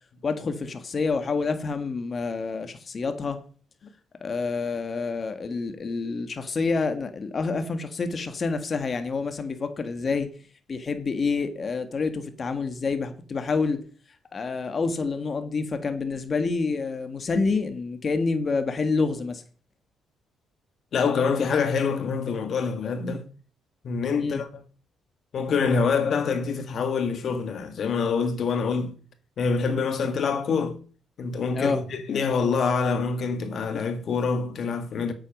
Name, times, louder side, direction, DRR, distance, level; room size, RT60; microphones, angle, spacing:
voice 1, 0.2-3.4 4.2-10.3 10.7-13.8 14.3-19.4 24.2-24.4 31.5-31.8, left 4 dB, 40° left, 1.7 m, -28 dB
voice 2, 20.9-23.3 23.8-24.6 25.3-29.0 29.4-30.8 31.2-35.1, left 5 dB, 60° left, 1.7 m, -26 dB
8.3 x 8.1 x 5.4 m
cardioid pair, 80°, 0 cm